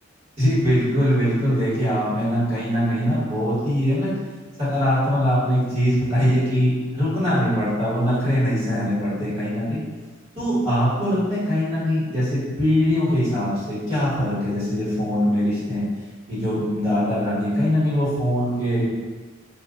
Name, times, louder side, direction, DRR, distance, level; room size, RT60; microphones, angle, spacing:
voice 1, 0.4-4.1 4.6-9.8 10.4-15.8 16.3-18.8, equal, 35° right, -11 dB, 1.3 m, -22 dB
2.3 x 2.1 x 3.6 m, 1.4 s
head